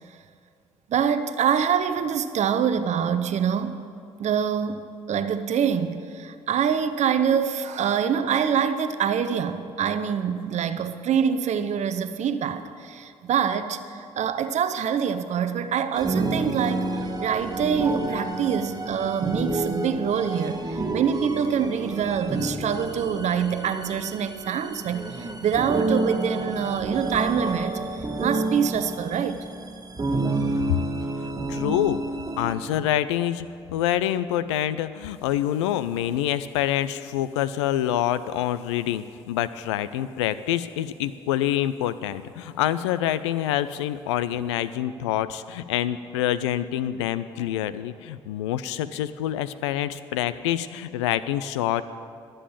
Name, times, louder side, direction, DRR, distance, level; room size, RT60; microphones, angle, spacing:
voice 1, 0.9-3.8 4.2-27.8 28.2-29.4, right 7 dB, 55° right, 11 dB, 0.8 m, -25 dB
sound 1, 15.9-32.5, right 2 dB, 25° right, 1.2 m, -29 dB
voice 2, 31.2-32.0 32.4-33.5 33.7-51.8, left 12 dB, 80° left, 14 dB, 0.4 m, -26 dB
12.0 x 7.7 x 7.2 m, 2.4 s
hypercardioid pair, 50°, 14 cm